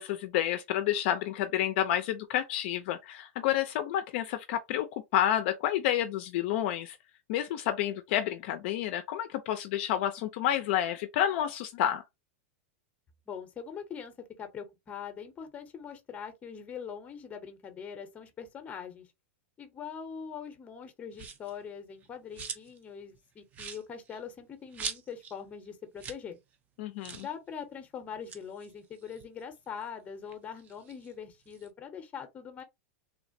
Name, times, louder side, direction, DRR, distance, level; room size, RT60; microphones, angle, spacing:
voice 1, 0.0-7.0 7.3-12.0 26.8-27.3, left 11 dB, 50° left, 0.4 m, -29 dB
voice 2, 13.3-19.1 19.6-26.4 27.2-32.6, left 7 dB, 20° left, 0.7 m, -42 dB
sound 1, 21.1-21.6 22.0-22.8 23.1-23.2 23.5-25.4 25.7-25.8 26.0-26.3 26.5-26.6 27.0-27.3 28.1-29.8 30.2-31.7, right 6 dB, 20° right, 0.4 m, -43 dB
3.1 x 2.0 x 2.6 m
supercardioid pair, 150°, 8 cm